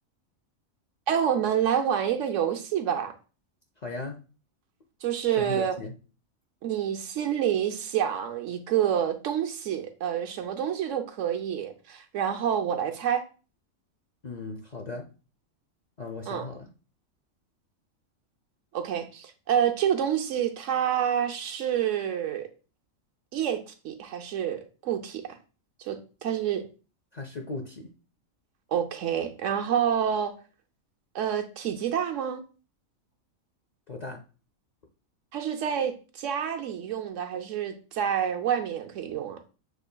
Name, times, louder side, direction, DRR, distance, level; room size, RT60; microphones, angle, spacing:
voice 1, 1.1-3.1 5.0-5.8 6.6-13.2 16.3-16.5 18.7-22.5 23.3-25.2 25.8-26.6 28.7-30.3 31.1-32.4 35.3-39.4, right 9 dB, 70° right, 1.0 m, -28 dB
voice 2, 3.8-4.2 5.3-5.9 14.2-15.1 16.0-16.7 27.1-27.9 33.9-34.2, left 3 dB, 55° left, 0.5 m, -37 dB
7.0 x 3.2 x 2.2 m
omnidirectional pair, 1.4 m